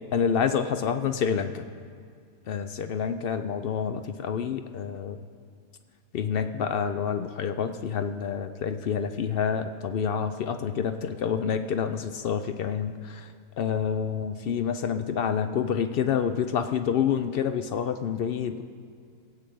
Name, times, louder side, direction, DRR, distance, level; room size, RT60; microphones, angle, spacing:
voice 1, 0.1-1.7 2.5-5.2 6.1-13.3 13.6-18.6, left 7 dB, 85° left, 9 dB, 0.5 m, -28 dB
15.5 x 8.7 x 7.7 m, 2.3 s
omnidirectional pair, 1.6 m